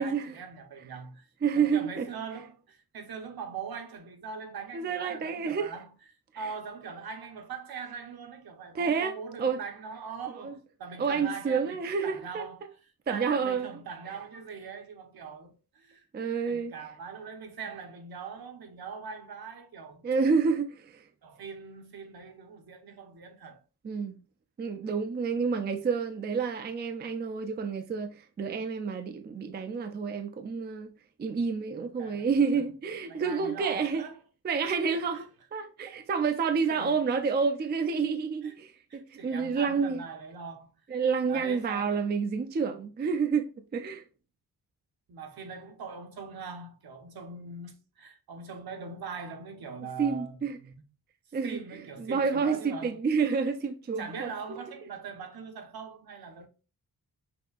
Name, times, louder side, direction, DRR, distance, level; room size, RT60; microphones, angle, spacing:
voice 1, 0.0-12.8 13.1-16.1 16.5-20.0 21.2-23.6 32.0-32.6 33.1-34.2 34.8-35.2 35.9-36.1 36.7-37.2 38.4-38.5 38.9-40.7 41.3-42.0 45.1-50.8 51.4-53.0 54.0-56.5, right 5 dB, 70° right, 1.0 m, -42 dB
voice 2, 1.4-2.1 4.7-5.7 8.7-9.6 10.4-10.5 11.0-12.5 13.1-13.7 16.1-16.7 20.0-21.0 23.8-24.2 24.6-30.9 31.2-34.0 34.4-40.0 40.9-44.0 50.0-50.6 51.3-51.6 52.0-54.3, right 5 dB, 30° right, 0.4 m, -29 dB
5.9 x 2.7 x 2.4 m
wide cardioid pair, 160°, 38 cm